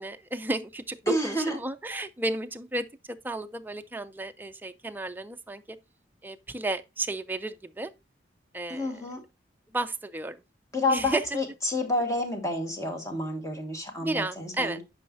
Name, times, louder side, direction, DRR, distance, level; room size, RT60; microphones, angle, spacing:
voice 1, 0.0-5.8 6.2-7.9 8.5-9.1 9.7-10.4 10.9-11.4 14.0-14.8, right 2 dB, 10° right, 0.4 m, -33 dB
voice 2, 1.1-1.5 8.7-9.2 10.7-14.8, left 1 dB, 15° left, 1.4 m, -29 dB
8.8 x 5.5 x 2.5 m
head